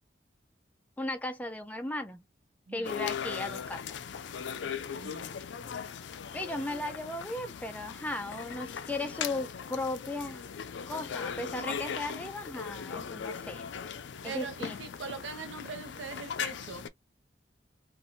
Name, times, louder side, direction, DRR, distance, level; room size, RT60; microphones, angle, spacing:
voice 1, 1.0-2.2 2.7-3.8 6.3-10.4 10.9-13.6 14.2-14.8, left 2 dB, 10° left, 0.4 m, -36 dB
sound 1, 2.8-16.9, left 7 dB, 70° left, 0.4 m, -39 dB
voice 2, 4.9-5.3 14.2-16.9, right 4 dB, 80° right, 0.9 m, -41 dB
3.0 x 2.5 x 2.6 m
head